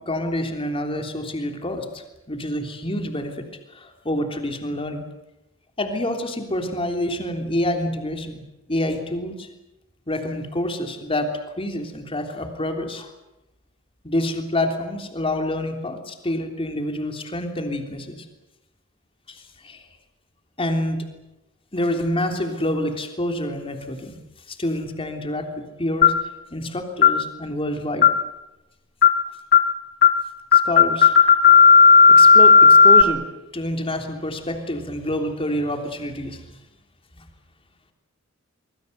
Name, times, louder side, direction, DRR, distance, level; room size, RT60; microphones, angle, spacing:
voice 1, 0.1-3.4 3.7-5.0 5.8-8.4 8.7-9.5 10.1-11.3 11.6-13.1 14.0-18.2 19.3-19.8 20.6-21.0 21.7-24.2 24.5-26.1 26.5-28.1 30.5-31.2 32.2-33.2 33.5-36.5, left 1 dB, 25° left, 5 dB, 3.4 m, -27 dB
sound 1, 26.0-26.3 27.0-27.2 28.0-28.3 29.0-29.2 29.5-29.7 30.0-30.2 30.5-33.0, left 5 dB, 50° left, 1.4 m, -12 dB
25.0 x 23.0 x 8.0 m, 0.95 s
head